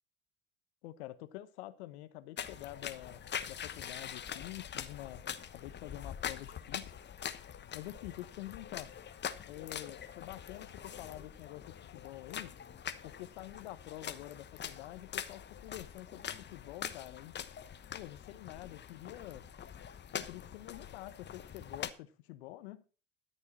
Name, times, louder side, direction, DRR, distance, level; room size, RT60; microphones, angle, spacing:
voice 1, 0.8-5.3 5.5-7.0 7.7-8.9 9.4-12.6 13.0-17.4 17.9-19.5 20.1-22.8, left 15 dB, 75° left, 1.2 m, -47 dB
sound 1, 2.4-21.9, left 8 dB, 30° left, 1.1 m, -44 dB
13.5 x 6.9 x 4.3 m
hypercardioid pair, 75°, 33 cm